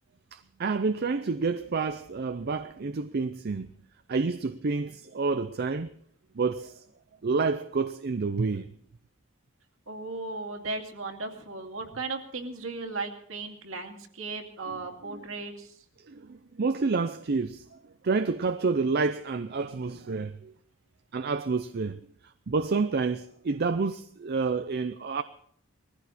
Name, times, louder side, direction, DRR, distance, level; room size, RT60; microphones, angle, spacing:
voice 1, 0.3-3.7 4.1-5.9 6.4-6.8 7.2-8.7 16.1-17.7 18.0-20.5 21.1-22.0 22.5-25.2, right 4 dB, 50° right, 0.5 m, -29 dB
voice 2, 9.9-15.8, right 3 dB, 70° right, 2.3 m, -36 dB
20.0 x 15.0 x 4.2 m
head